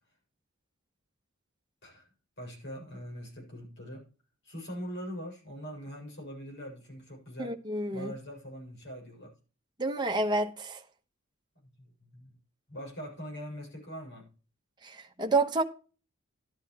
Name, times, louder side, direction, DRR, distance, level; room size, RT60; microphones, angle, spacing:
voice 1, 2.4-4.1 4.4-7.6 7.9-9.3 11.6-12.4 12.7-14.3, equal, 55° left, 6.9 m, -42 dB
voice 2, 7.4-8.1 9.8-10.8 14.8-15.6, right 2 dB, 20° right, 1.3 m, -29 dB
13.0 x 10.5 x 3.1 m
head